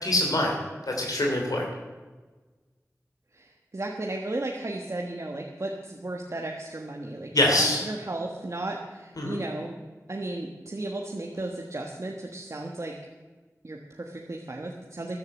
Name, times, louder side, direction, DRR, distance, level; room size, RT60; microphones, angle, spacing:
voice 1, 0.0-0.6 0.9-1.7 7.3-7.8 9.2-9.4, left 1 dB, 85° left, -1 dB, 3.1 m, -24 dB
voice 2, 3.3-9.8 10.1-12.9 13.6-15.2, right 2 dB, 55° right, 1 dB, 1.5 m, -35 dB
14.5 x 10.5 x 7.6 m, 1.3 s
wide cardioid pair, 55°, 6 cm